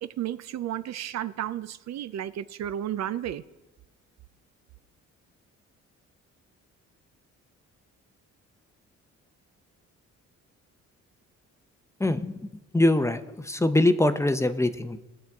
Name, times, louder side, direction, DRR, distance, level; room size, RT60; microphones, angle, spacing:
voice 1, 0.0-3.4, right 11 dB, 60° right, 0.5 m, -33 dB
voice 2, 12.0-12.4 12.7-15.0, left 1 dB, 10° left, 0.7 m, -23 dB
19.5 x 7.4 x 3.5 m
cardioid pair, 90°, 30 cm